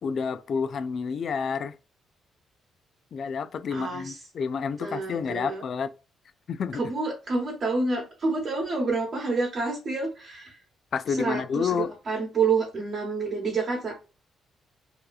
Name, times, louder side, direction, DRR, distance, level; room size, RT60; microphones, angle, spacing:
voice 1, 0.0-1.7 3.1-5.9 6.5-6.8 10.9-11.9, left 6 dB, 55° left, 0.3 m, -29 dB
voice 2, 3.7-4.1 4.8-5.6 6.7-10.6 11.2-13.9, right 4 dB, 50° right, 1.2 m, -28 dB
2.8 x 2.3 x 2.3 m
cardioid pair, 90°, 0 cm